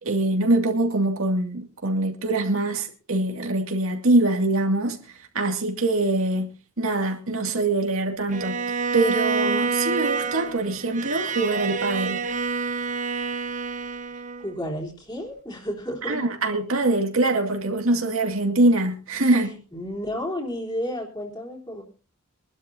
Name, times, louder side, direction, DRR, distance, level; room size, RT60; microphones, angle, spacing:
voice 1, 0.0-12.2 16.0-19.5, right 2 dB, 75° right, 2.3 m, -24 dB
Bowed string instrument, 8.3-14.5, right 4 dB, 35° right, 0.8 m, -28 dB
voice 2, 14.4-16.3 19.3-19.4 19.7-21.8, equal, 20° left, 3.4 m, -32 dB
24.5 x 12.0 x 2.7 m
head